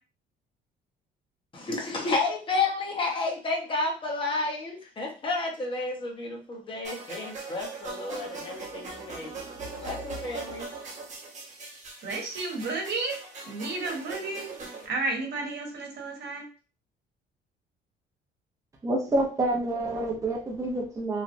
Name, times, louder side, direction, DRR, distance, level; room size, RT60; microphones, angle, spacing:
voice 1, 1.5-9.4 9.8-10.7, left 3 dB, 25° left, 0 dB, 0.8 m, -31 dB
sound 1, 6.8-14.9, right 3 dB, 40° right, 1.0 m, -40 dB
voice 2, 12.0-13.2 13.5-14.4 14.8-16.5, right 3 dB, 60° right, 0 dB, 1.1 m, -32 dB
voice 3, 18.8-21.2, right 2 dB, 15° right, 0 dB, 0.6 m, -28 dB
3.1 x 2.4 x 2.5 m, 0.36 s
cardioid pair, 135°, 19 cm